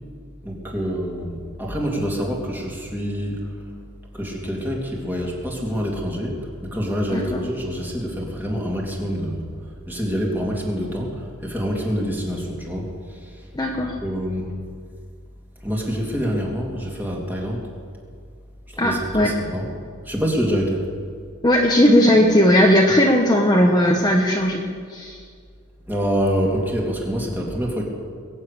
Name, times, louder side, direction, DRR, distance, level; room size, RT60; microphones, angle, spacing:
voice 1, 0.4-3.5 4.1-9.4 9.9-12.9 13.7-14.6 15.6-17.6 18.7-19.7 20.1-20.8 25.9-27.8, equal, 10° right, -2 dB, 3.0 m, -26 dB
voice 2, 7.1-7.4 13.5-13.9 18.8-19.3 21.4-25.2, left 1 dB, 20° left, 0 dB, 1.2 m, -17 dB
22.0 x 7.6 x 8.5 m, 2.1 s
head